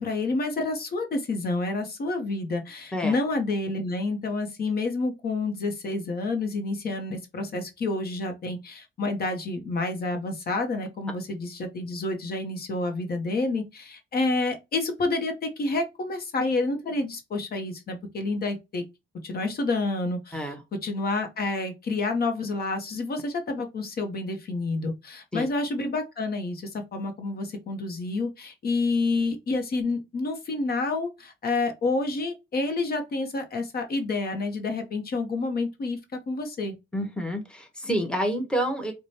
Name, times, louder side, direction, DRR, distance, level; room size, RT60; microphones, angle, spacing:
voice 1, 0.0-18.8 19.2-20.5 20.8-36.0 36.3-36.7, left 3 dB, 50° left, 0.9 m, -29 dB
voice 2, 36.9-38.9, equal, 5° left, 1.0 m, -28 dB
4.8 x 2.2 x 2.8 m
cardioid pair, 90°, 20 cm